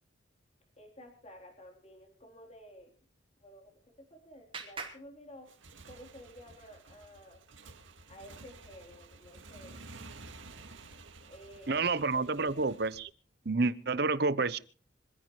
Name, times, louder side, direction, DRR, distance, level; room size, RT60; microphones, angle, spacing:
voice 1, 0.8-2.9 3.4-5.5 5.9-7.4 8.1-9.8 11.3-11.9 12.2-12.5, equal, 35° left, 1 dB, 3.8 m, -52 dB
Clapping, 3.4-6.0, right 4 dB, 30° right, 4.4 m, -48 dB
Motorcycle / Engine, 5.4-13.0, right 3 dB, 85° right, 2.1 m, -52 dB
voice 2, 11.7-13.1 13.5-14.6, right 3 dB, 55° right, 16 dB, 0.8 m, -29 dB
26.0 x 15.0 x 3.2 m, 0.39 s
head